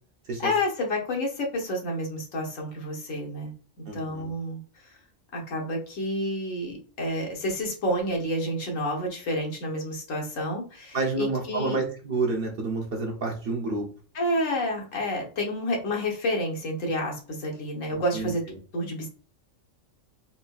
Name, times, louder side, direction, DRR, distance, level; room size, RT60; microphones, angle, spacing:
voice 1, 0.4-3.5 3.9-4.6 5.3-11.8 14.1-18.4 18.7-19.1, left 1 dB, 75° left, 0 dB, 1.4 m, -29 dB
voice 2, 3.9-4.3 10.9-13.9 18.1-18.3, right 3 dB, 50° right, 0 dB, 0.9 m, -29 dB
4.2 x 2.7 x 2.3 m, 0.38 s
omnidirectional pair, 1.4 m